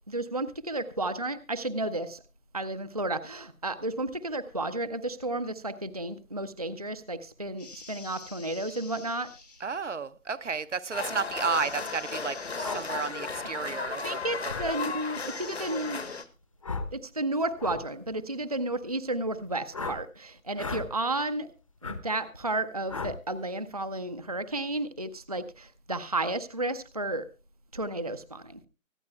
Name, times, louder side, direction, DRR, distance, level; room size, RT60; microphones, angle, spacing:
voice 1, 0.1-2.2 2.5-9.3 14.0-16.0 16.9-21.5 21.8-27.3 27.7-28.7, right 2 dB, 30° right, 0.6 m, -32 dB
sound 1, 7.6-9.8 11.5-13.1 15.1-16.3, left 3 dB, 70° left, 5.6 m, -48 dB
voice 2, 9.6-14.6, right 5 dB, 65° right, 0.8 m, -32 dB
sound 2, 10.9-16.2, left 4 dB, 55° left, 1.6 m, -35 dB
sound 3, 12.6-12.8 14.5-14.7 16.6-16.9 17.6-17.8 19.7-20.0 20.5-20.9 21.8-22.0 22.9-23.2, left 4 dB, 25° left, 1.0 m, -34 dB
24.5 x 8.9 x 2.2 m
figure-of-eight pair, 160°, 40 cm